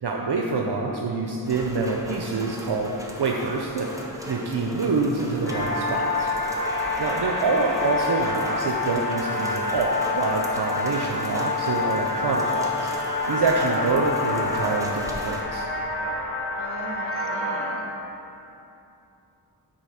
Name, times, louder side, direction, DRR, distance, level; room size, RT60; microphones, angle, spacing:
voice 1, 0.0-3.9 4.3-6.3 7.0-12.9 13.3-15.7, right 3 dB, 60° right, 0 dB, 0.6 m, -26 dB
Rain, 1.5-15.4, equal, 5° right, 1.0 m, -38 dB
sound 1, 5.5-17.7, left 3 dB, 25° left, 1.6 m, -27 dB
voice 2, 7.1-7.6 16.6-17.8, right 1 dB, 30° right, 0 dB, 1.2 m, -41 dB
7.8 x 4.2 x 5.7 m, 2.8 s
wide cardioid pair, 40°, 45 cm